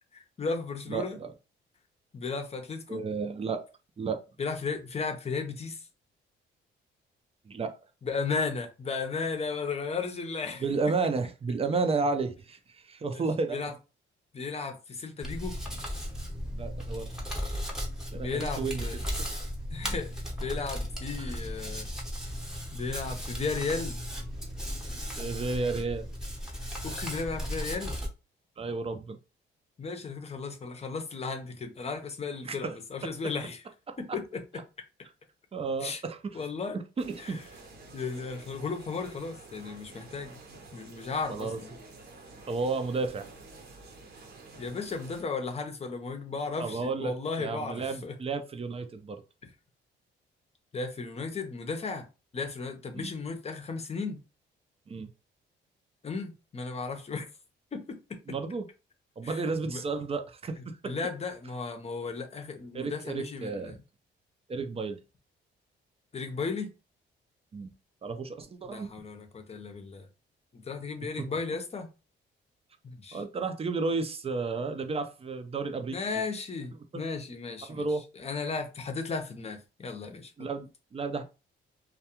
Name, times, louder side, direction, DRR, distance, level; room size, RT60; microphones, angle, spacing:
voice 1, 0.1-1.2 2.1-3.0 4.4-5.8 8.0-10.6 13.1-13.2 13.5-13.7 14.3-15.5 18.1-19.0 19.7-20.1 20.4-21.9 22.2-22.3 22.7-24.0 26.8-28.0 29.8-33.6 34.0-34.6 35.8-36.0 36.3-36.8 37.2-37.4 37.9-40.4 40.7-41.8 44.6-48.1 50.7-52.1 52.3-54.2 56.0-57.3 57.7-58.2 59.2-59.8 60.8-63.8 66.1-66.7 68.7-70.1 70.5-71.9 72.8-73.2 75.9-77.8 78.2-80.3, left 4 dB, 30° left, 0.7 m, -35 dB
voice 2, 0.9-1.3 2.9-3.7 4.0-4.2 7.5-7.8 10.6-13.6 16.5-17.1 18.1-18.8 21.2-21.3 25.2-26.1 28.6-29.2 32.4-32.7 34.1-34.2 35.5-36.5 36.7-37.4 41.3-41.6 42.5-43.3 46.6-49.2 52.9-53.1 54.9-55.1 58.3-58.7 59.2-61.0 62.7-63.8 64.5-65.0 67.5-67.7 68.0-68.9 71.2-71.3 73.1-76.2 76.9-77.0 77.7-78.0 80.4-81.2, right 4 dB, 30° right, 0.5 m, -32 dB
Hands, 15.2-28.1, equal, 5° right, 0.9 m, -36 dB
sound 1, 37.0-45.2, right 3 dB, 55° right, 0.8 m, -50 dB
2.3 x 2.2 x 2.9 m
cardioid pair, 90°, 20 cm